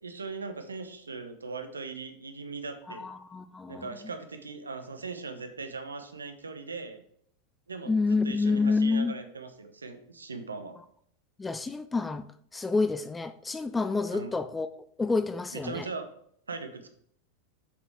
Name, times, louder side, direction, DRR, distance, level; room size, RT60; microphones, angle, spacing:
voice 1, 0.0-3.1 3.7-7.0 7.7-10.8 14.1-14.3 15.5-16.1 16.5-16.9, right 4 dB, 80° right, 1.0 m, -39 dB
voice 2, 3.0-4.0 7.9-9.1 11.4-12.3 12.5-14.7 15.0-15.8, left 4 dB, 15° left, 0.5 m, -28 dB
7.5 x 6.1 x 3.5 m
figure-of-eight pair, 90°, 0 cm